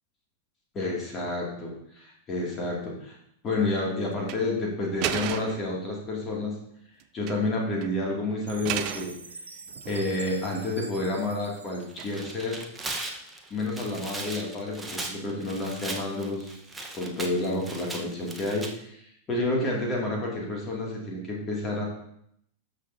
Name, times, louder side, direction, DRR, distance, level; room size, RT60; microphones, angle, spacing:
voice 1, 0.7-3.2 3.4-6.6 7.1-9.1 9.9-12.6 13.5-16.6 16.9-19.0 19.3-21.8, left 2 dB, 25° left, -2 dB, 2.4 m, -30 dB
sound 1, 4.2-4.4 5.0-5.7 7.0-7.5 7.8-7.9 8.6-9.1 9.7-10.3 12.0-12.4, right 11 dB, 40° right, 0.5 m, -33 dB
Chime, 8.5-12.7, right 4 dB, 75° right, 1.0 m, -45 dB
Tearing, 11.8-18.7, right 2 dB, 10° right, 1.1 m, -38 dB
13.0 x 6.6 x 2.8 m, 0.72 s
figure-of-eight pair, 90°, 0 cm